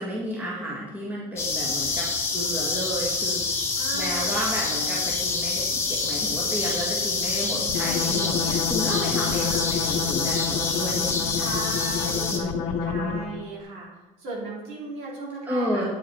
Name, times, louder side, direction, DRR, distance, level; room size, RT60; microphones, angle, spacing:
voice 1, 0.0-3.6 3.9-11.5 12.0-13.2 15.5-15.9, equal, 15° right, -5 dB, 1.8 m, -32 dB
sound 1, 1.4-12.4, left 4 dB, 20° left, 1.4 m, -27 dB
voice 2, 3.8-4.4 7.7-8.1 9.2-9.6 11.3-12.4 12.8-13.9 14.2-16.0, right 2 dB, 55° right, -4 dB, 4.0 m, -36 dB
sound 2, 7.7-13.4, left 7 dB, 55° left, 0.7 m, -29 dB
8.9 x 8.5 x 4.6 m, 1.1 s
cardioid pair, 170°, 13 cm